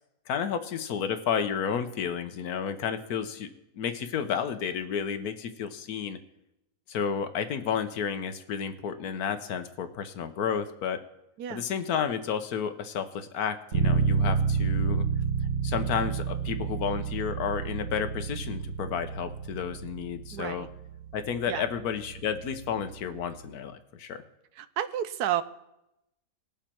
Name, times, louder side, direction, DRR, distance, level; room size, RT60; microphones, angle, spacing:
voice 1, 0.3-3.5 3.8-6.2 6.9-11.0 11.5-15.0 15.6-20.7 21.1-24.2, left 7 dB, 70° left, 9 dB, 1.3 m, -31 dB
Bass guitar, 13.7-23.4, right 6 dB, 50° right, 1.5 m, -30 dB
voice 2, 20.3-20.7 21.5-21.6 24.6-25.4, right 11 dB, 75° right, 13 dB, 1.2 m, -31 dB
19.5 x 7.2 x 4.4 m, 0.86 s
omnidirectional pair, 1.7 m